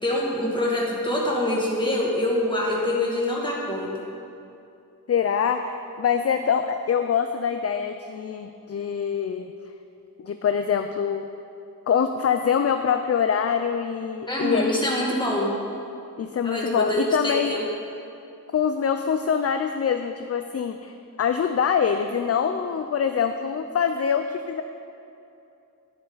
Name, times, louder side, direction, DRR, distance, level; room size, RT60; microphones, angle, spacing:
voice 1, 0.0-3.9 14.3-15.5 16.4-17.6, left 1 dB, 15° left, -4 dB, 2.1 m, -25 dB
voice 2, 5.1-9.5 10.2-11.2 11.9-14.6 16.2-17.5 18.5-20.9 21.2-24.6, left 7 dB, 45° left, 7 dB, 0.4 m, -24 dB
12.0 x 10.0 x 4.0 m, 2.7 s
wide cardioid pair, 120°, 36 cm